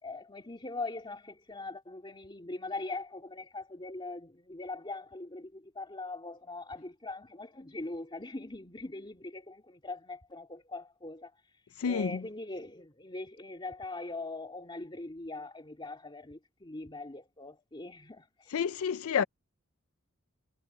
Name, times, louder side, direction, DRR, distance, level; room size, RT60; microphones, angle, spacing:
voice 1, 0.0-11.3 11.8-18.2, left 2 dB, 25° left, 2.4 m, -41 dB
voice 2, 11.8-12.1 18.5-19.2, left 7 dB, 85° left, 0.4 m, -29 dB
head